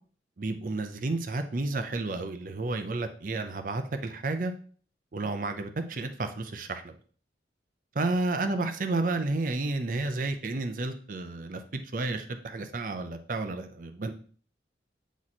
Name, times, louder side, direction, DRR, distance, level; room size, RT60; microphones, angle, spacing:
voice 1, 0.4-4.5 5.1-6.9 7.9-14.1, right 2 dB, 50° right, 7 dB, 0.6 m, -31 dB
8.6 x 3.1 x 4.1 m, 0.44 s
head